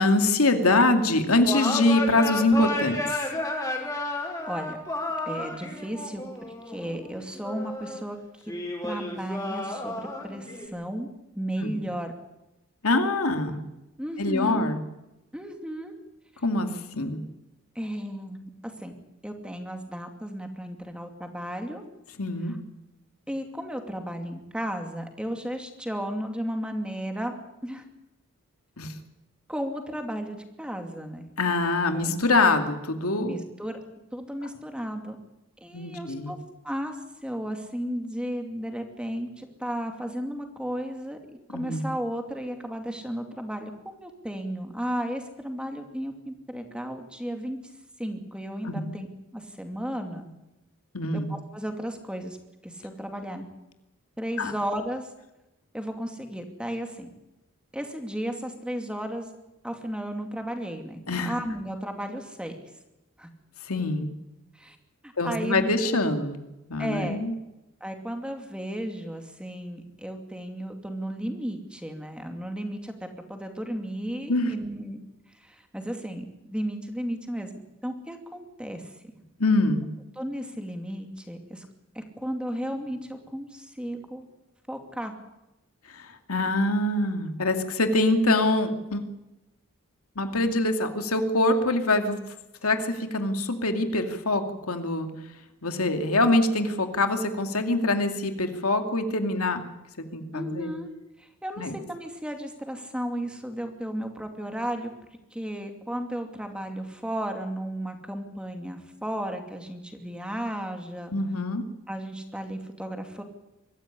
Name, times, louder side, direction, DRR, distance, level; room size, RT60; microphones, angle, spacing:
voice 1, 0.0-3.0 11.6-11.7 12.8-13.6 14.2-14.8 16.4-17.2 22.2-22.5 28.8-28.9 31.4-33.4 35.7-36.3 41.5-41.8 48.6-48.9 50.9-51.3 54.4-54.5 61.1-61.3 63.6-64.1 65.2-66.4 66.7-67.3 74.3-74.5 79.4-79.9 85.9-89.0 90.2-92.2 92.6-95.1 95.6-99.6 100.1-100.7 101.6-101.7 111.1-111.6, left 2 dB, 85° left, 6 dB, 2.5 m, -24 dB
sound 1, 1.4-8.0 8.5-10.7, left 2 dB, 15° left, 4.7 m, -32 dB
voice 2, 4.1-4.8 5.3-6.2 6.7-8.2 8.4-8.6 8.8-11.1 11.4-12.1 14.0-14.7 15.3-15.9 17.7-18.5 18.8-18.9 19.2-21.8 22.5-22.6 23.3-27.3 27.6-27.8 29.5-31.2 31.9-32.2 33.2-33.8 34.1-35.2 35.6-36.4 36.6-37.0 37.2-41.2 41.5-47.6 48.0-49.1 49.3-50.3 51.1-52.4 52.6-53.5 54.2-55.1 55.7-57.1 57.7-59.3 59.6-62.6 63.2-63.3 64.5-64.8 65.0-66.0 66.8-67.2 67.8-75.0 75.3-77.5 77.8-78.9 80.2-81.7 81.9-84.2 84.7-85.1 100.3-100.9 101.2-104.9 105.3-111.1 111.9-113.2, equal, 5° right, 5 dB, 2.5 m, -34 dB
24.0 x 14.5 x 10.0 m, 0.97 s
head